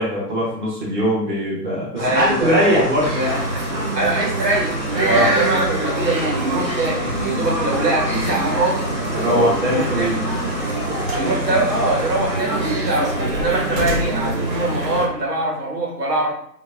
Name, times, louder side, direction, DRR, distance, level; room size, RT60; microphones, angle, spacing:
voice 1, 0.0-3.4 3.7-3.8 5.0-5.3 9.1-10.2, equal, 30° right, -6 dB, 0.7 m, -21 dB
sound 1, 2.0-12.4, left 1 dB, 30° left, 0.5 m, -31 dB
voice 2, 2.0-2.8 3.9-9.0 9.6-10.3 11.1-16.3, right 2 dB, 70° right, -4 dB, 1.4 m, -23 dB
sound 2, 3.0-15.1, right 2 dB, 90° right, 1.2 m, -25 dB
sound 3, 11.0-11.4 11.7-12.4 12.8-14.3 15.2-15.3, equal, 50° right, 1.5 m, -31 dB
3.8 x 2.1 x 2.4 m, 0.68 s
hypercardioid pair, 155°, 50 cm